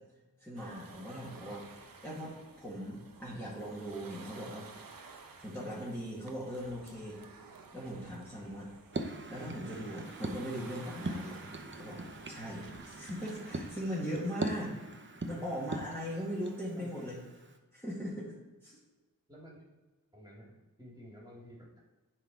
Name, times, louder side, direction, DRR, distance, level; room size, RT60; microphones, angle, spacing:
voice 1, 0.4-1.7 2.0-4.7 5.4-7.2 7.7-8.7 9.3-11.5 11.7-12.0 12.3-14.8 15.3-17.2 17.7-18.4 18.6-18.8, equal, 5° left, -8 dB, 2.1 m, -39 dB
sound 1, 0.5-13.8, right 4 dB, 85° right, 0.9 m, -53 dB
sound 2, 8.9-17.6, right 2 dB, 35° right, 0.8 m, -42 dB
voice 2, 19.3-19.6 20.1-21.8, equal, 10° right, -4 dB, 2.6 m, -52 dB
11.0 x 4.3 x 4.7 m, 1.2 s
wide cardioid pair, 90°, 34 cm